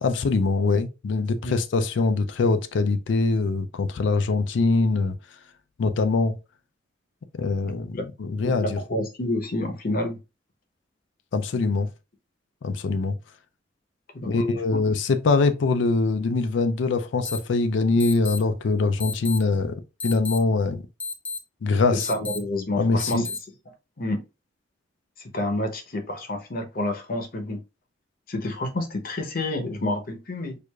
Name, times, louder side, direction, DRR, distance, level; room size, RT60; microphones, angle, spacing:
voice 1, 0.0-5.2 5.8-6.4 7.3-8.8 11.3-11.9 12.6-13.1 14.3-20.8 21.6-22.1 22.8-23.3, left 3 dB, 75° left, 0.4 m, -23 dB
voice 2, 7.6-8.0 8.6-10.2 14.1-14.4 14.7-14.8 21.9-23.3 24.0-24.2 25.3-27.6 28.3-30.6, left 1 dB, 50° left, 0.8 m, -29 dB
sound 1, 17.2-17.4 18.0-18.4 19.0-19.4 20.0-20.4 21.0-21.4 22.0-22.4 23.0-23.4, left 4 dB, 10° left, 0.5 m, -32 dB
4.6 x 2.5 x 2.3 m
head